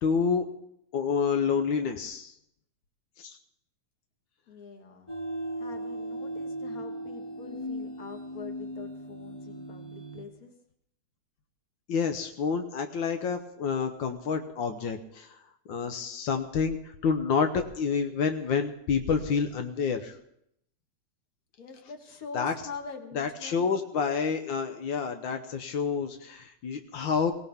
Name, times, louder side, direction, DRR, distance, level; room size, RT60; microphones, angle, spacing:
voice 1, 0.0-0.4 0.9-2.3 3.2-3.4 11.9-15.3 15.7-20.2 22.3-22.5 23.1-27.3, left 6 dB, 80° left, 6 dB, 1.0 m, -28 dB
voice 2, 4.5-5.1 5.6-10.5 21.6-23.7, left 5 dB, 40° left, 4 dB, 1.6 m, -44 dB
sound 1, 5.1-10.2, right 1 dB, 15° left, 1.2 m, -37 dB
22.5 x 17.0 x 3.6 m, 0.73 s
omnidirectional pair, 3.4 m